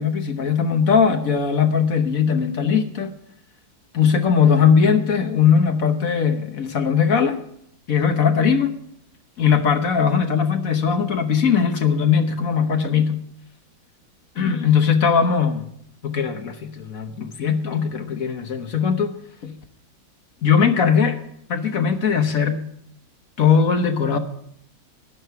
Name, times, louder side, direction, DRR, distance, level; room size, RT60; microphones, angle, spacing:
voice 1, 0.0-3.1 3.9-7.4 7.9-8.7 9.4-13.2 14.4-15.7 16.0-19.1 19.4-19.5 20.4-21.2 21.5-22.6 23.4-24.2, left 6 dB, 50° left, 7 dB, 1.4 m, -19 dB
12.5 x 11.0 x 4.7 m, 0.72 s
omnidirectional pair, 2.0 m